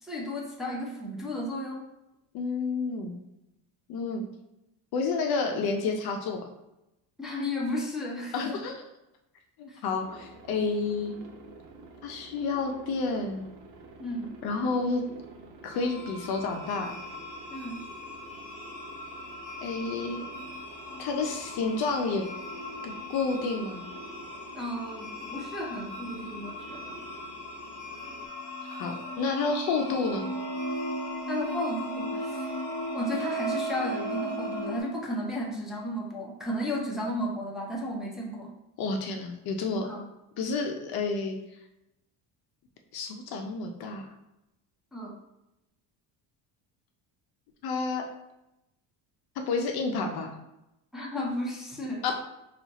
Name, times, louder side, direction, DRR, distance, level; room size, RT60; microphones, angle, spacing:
voice 1, 0.0-1.9 7.2-8.4 9.7-9.8 14.0-14.4 17.5-17.8 24.6-27.0 31.3-32.5 32.9-38.5 39.8-40.0 44.9-45.2 50.9-52.0, left 1 dB, ahead, -4 dB, 0.6 m, -34 dB
voice 2, 2.3-3.2 3.9-4.2 4.9-6.4 8.3-8.8 9.6-11.2 12.0-13.5 14.4-15.0 15.6-16.9 19.6-20.2 21.0-22.2 22.8-23.8 28.7-30.3 38.8-39.9 40.4-41.4 42.9-44.1 47.6-48.0 49.5-50.3 52.0-52.1, left 4 dB, 55° left, 3 dB, 0.6 m, -30 dB
Aircraft, 10.0-28.3, right 3 dB, 75° right, 1.0 m, -49 dB
sound 1, 15.7-34.8, equal, 35° left, 1.3 m, -37 dB
4.3 x 2.4 x 4.0 m, 0.90 s
cardioid pair, 145°, 46 cm